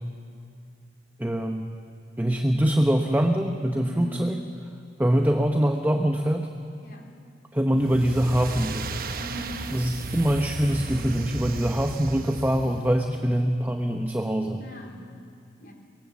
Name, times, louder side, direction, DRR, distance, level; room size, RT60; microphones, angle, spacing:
voice 1, 1.2-1.7 2.2-4.4 5.0-6.5 7.5-9.0 9.7-14.6, equal, 10° right, 4 dB, 0.9 m, -24 dB
voice 2, 3.9-4.2 6.8-7.1 9.2-9.7 14.6-15.1 15.6-15.7, right 1 dB, 55° left, 1 dB, 3.8 m, -40 dB
sound 1, 7.7-13.1, right 3 dB, 55° right, 1.0 m, -35 dB
24.0 x 21.0 x 7.4 m, 2.4 s
head